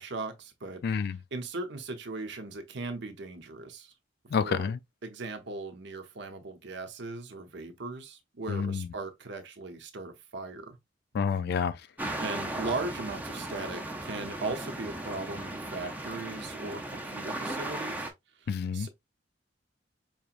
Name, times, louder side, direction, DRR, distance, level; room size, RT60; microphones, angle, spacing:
voice 1, 0.0-0.8 1.3-3.9 4.4-4.7 5.0-10.8 12.2-18.1 18.4-18.9, right 3 dB, 65° right, 0.8 m, -38 dB
voice 2, 0.8-1.2 4.3-4.8 8.5-8.9 11.1-11.8 18.5-18.9, left 6 dB, 55° left, 0.3 m, -29 dB
sound 1, 12.0-18.1, right 1 dB, 10° right, 0.6 m, -37 dB
4.8 x 2.9 x 2.5 m
head